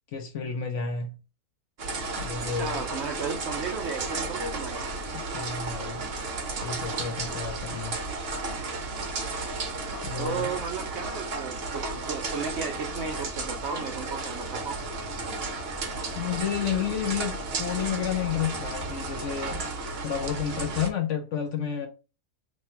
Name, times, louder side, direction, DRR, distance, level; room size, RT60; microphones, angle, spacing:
voice 1, 0.1-1.2 2.2-2.8 5.1-6.1 6.6-8.0 10.0-10.5 16.1-19.7 20.0-21.9, left 8 dB, 60° left, 0.8 m, -31 dB
sound 1, 1.8-20.9, right 3 dB, 50° right, 0.8 m, -33 dB
voice 2, 2.4-4.8 10.2-14.8, right 5 dB, 75° right, 0.6 m, -34 dB
3.2 x 2.3 x 4.2 m
omnidirectional pair, 1.7 m